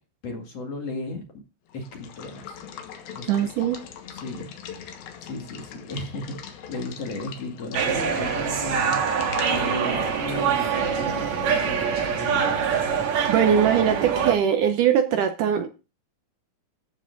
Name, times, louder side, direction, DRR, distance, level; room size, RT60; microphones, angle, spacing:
voice 1, 0.2-1.3 1.7-2.6 3.1-3.7 4.1-4.9 5.2-9.0 9.5-12.6, left 2 dB, 50° left, 2.7 m, -35 dB
Water / Water tap faucet / Liquid, 1.7-11.3, left 8 dB, 85° left, 3.3 m, -42 dB
voice 2, 3.3-3.8 13.3-15.7, right 9 dB, 75° right, 2.1 m, -21 dB
sound 1, 7.7-14.4, right 6 dB, 60° right, 2.4 m, -24 dB
14.5 x 5.9 x 3.9 m
omnidirectional pair, 4.2 m